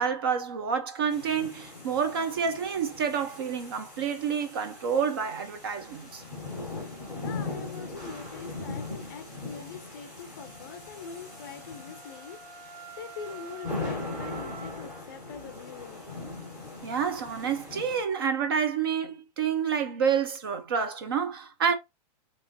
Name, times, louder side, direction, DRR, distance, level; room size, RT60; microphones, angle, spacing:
voice 1, 0.0-6.2 16.8-21.8, right 7 dB, 35° right, 0.4 m, -28 dB
sound 1, 1.1-18.0, left 3 dB, 5° right, 1.2 m, -40 dB
voice 2, 7.1-16.1, left 6 dB, 30° left, 0.5 m, -43 dB
Wind instrument woodwind instrument, 10.4-15.1, right 7 dB, 60° right, 0.9 m, -48 dB
3.5 x 2.9 x 2.6 m
supercardioid pair, 175°, 21 cm